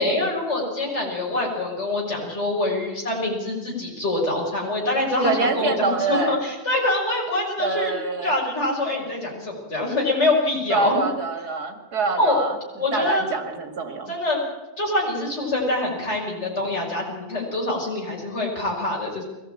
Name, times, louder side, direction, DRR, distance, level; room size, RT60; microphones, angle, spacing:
voice 1, 0.0-7.9 8.2-11.0 12.2-12.4 12.8-13.3 14.1-14.4 14.8-19.2, left 2 dB, 45° left, -2 dB, 6.1 m, -25 dB
voice 2, 5.2-6.4 7.6-8.3 10.7-12.6 12.9-14.1, right 4 dB, 90° right, 5 dB, 2.8 m, -25 dB
22.5 x 17.0 x 8.8 m, 1.1 s
omnidirectional pair, 1.6 m